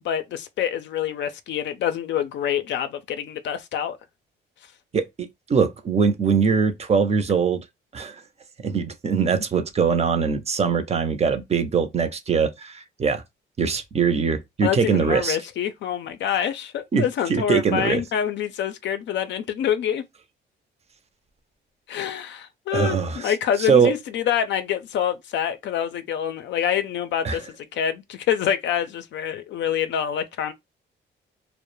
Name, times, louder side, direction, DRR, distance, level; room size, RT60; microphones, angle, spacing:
voice 1, 0.0-4.0 14.6-20.0 21.9-30.5, left 9 dB, 65° left, 0.4 m, -26 dB
voice 2, 4.9-7.6 7.9-8.2 8.6-13.2 13.6-15.4 16.9-18.0 22.7-23.3 23.6-23.9 27.2-27.4, right 6 dB, 30° right, 0.5 m, -22 dB
2.2 x 2.0 x 3.0 m
cardioid pair, 90°, 20 cm